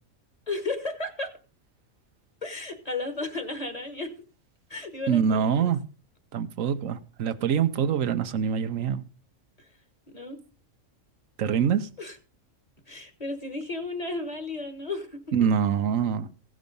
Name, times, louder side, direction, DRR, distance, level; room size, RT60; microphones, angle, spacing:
voice 1, 0.5-1.3 2.4-4.1 4.7-5.7 9.6-9.7 10.1-10.4 12.0-12.2 12.9-15.5, left 2 dB, 30° left, 1.6 m, -34 dB
voice 2, 5.1-5.8 6.3-9.0 11.4-11.9 15.3-16.3, right 7 dB, 85° right, 1.2 m, -25 dB
16.0 x 6.2 x 5.4 m
omnidirectional pair, 1.3 m